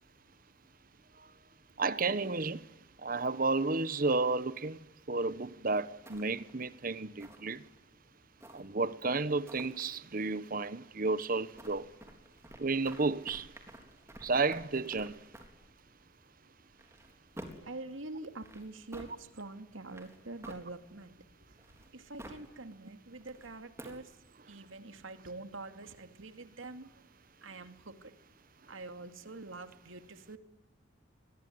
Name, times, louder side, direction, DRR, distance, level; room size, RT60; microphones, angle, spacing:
voice 1, 1.8-2.6 3.0-4.8 5.1-7.6 8.5-11.8 12.6-13.5 14.2-15.2, right 3 dB, 45° right, 1.0 m, -32 dB
sound 1, 6.0-6.6 7.2-7.8 8.4-8.9 9.5-9.8 11.5-15.7 16.7-17.8 18.3-19.1 19.9-21.0 21.6-22.5 23.2-24.1, right 1 dB, 15° right, 3.9 m, -51 dB
voice 2, 17.6-21.5 21.9-24.1 24.5-27.0 27.4-28.1 28.7-30.4, right 2 dB, 85° right, 2.4 m, -46 dB
25.5 x 21.5 x 9.5 m
head